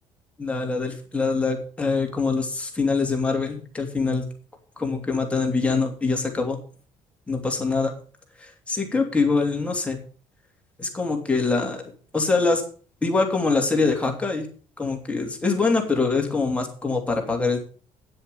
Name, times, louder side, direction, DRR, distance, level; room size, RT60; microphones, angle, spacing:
voice 1, 0.4-4.3 4.8-6.6 7.3-7.9 8.4-10.0 10.8-11.8 12.1-12.6 13.0-14.5 14.8-17.6, left 4 dB, 10° left, 2 dB, 2.9 m, -24 dB
9.6 x 7.8 x 6.9 m, 0.41 s
cardioid pair, 120°, 11 cm